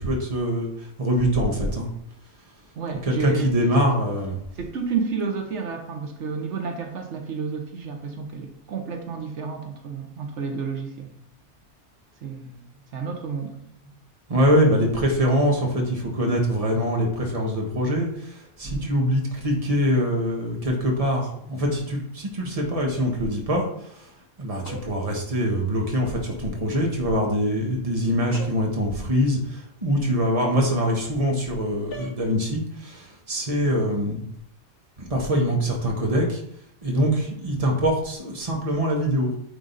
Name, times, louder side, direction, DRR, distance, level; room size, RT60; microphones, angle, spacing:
voice 1, 0.0-1.9 3.0-4.4 14.3-24.1 24.4-34.2 35.0-36.4 36.8-39.3, equal, 30° right, 0 dB, 1.5 m, -24 dB
voice 2, 2.8-3.5 4.6-11.1 12.2-12.6 12.9-13.6 18.6-18.9, right 5 dB, 85° right, 3 dB, 1.3 m, -30 dB
sound 1, 24.6-25.1 28.3-28.8 31.9-32.2, left 1 dB, 55° left, 1.5 m, -39 dB
9.5 x 3.9 x 4.0 m, 0.71 s
omnidirectional pair, 1.2 m